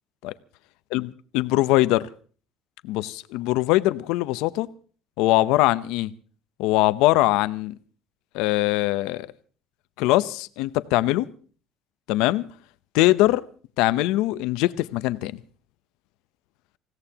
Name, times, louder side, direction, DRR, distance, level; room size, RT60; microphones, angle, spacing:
voice 1, 0.9-2.1 2.8-4.7 5.2-6.1 6.6-7.7 8.3-9.3 10.0-11.3 12.1-12.5 12.9-13.4 13.8-15.4, left 17 dB, 85° left, 0.7 m, -22 dB
27.5 x 16.5 x 2.9 m
cardioid pair, 160°, 0 cm